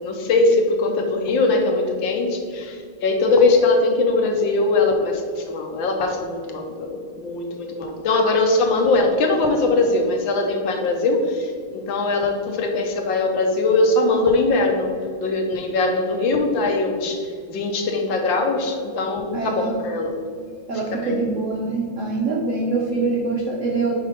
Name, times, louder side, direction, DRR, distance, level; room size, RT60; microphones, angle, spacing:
voice 1, 0.0-14.9 15.2-20.2 20.7-21.2, left 3 dB, 70° left, 3 dB, 1.4 m, -21 dB
voice 2, 19.3-19.8 20.7-23.9, right 3 dB, 80° right, -3 dB, 0.7 m, -24 dB
5.3 x 4.4 x 5.2 m, 2.1 s
omnidirectional pair, 2.4 m